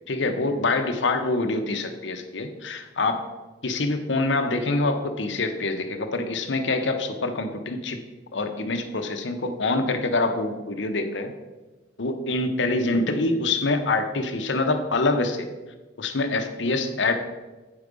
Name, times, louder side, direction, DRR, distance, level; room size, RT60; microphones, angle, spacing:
voice 1, 0.1-3.2 3.6-8.0 8.3-11.3 12.0-15.5 16.0-17.1, left 2 dB, 85° left, 6 dB, 0.9 m, -25 dB
8.9 x 4.9 x 5.2 m, 1.2 s
head